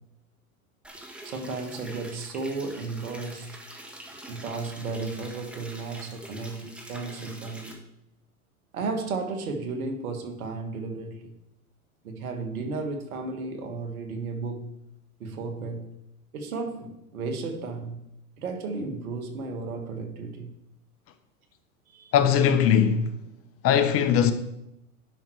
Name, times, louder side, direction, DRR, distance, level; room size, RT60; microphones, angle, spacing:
sound 1, 0.8-7.7, right 1 dB, 5° right, 1.6 m, -45 dB
voice 1, 1.2-3.6 4.3-7.8 8.7-11.3 12.0-14.7 15.2-15.9 16.3-18.0 18.4-20.5 21.9-22.1, right 3 dB, 75° right, 1.9 m, -34 dB
voice 2, 22.1-23.1 23.6-24.3, left 8 dB, 30° left, 0.8 m, -20 dB
11.0 x 6.0 x 4.7 m
hypercardioid pair, 105°, 44 cm